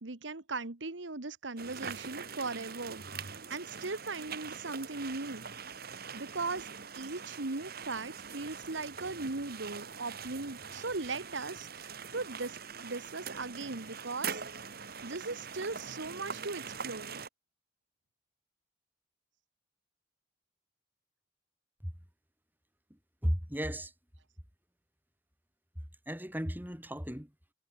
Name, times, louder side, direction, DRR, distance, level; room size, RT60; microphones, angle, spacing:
voice 1, 0.0-3.0 3.3-5.4 6.1-6.7 6.9-14.4 14.8-17.2, right 3 dB, 75° right, 1.5 m, -38 dB
sound 1, 1.6-17.3, right 6 dB, 55° right, 2.5 m, -43 dB
voice 2, 22.9-23.9 26.1-27.3, equal, 10° right, 6.3 m, -35 dB
head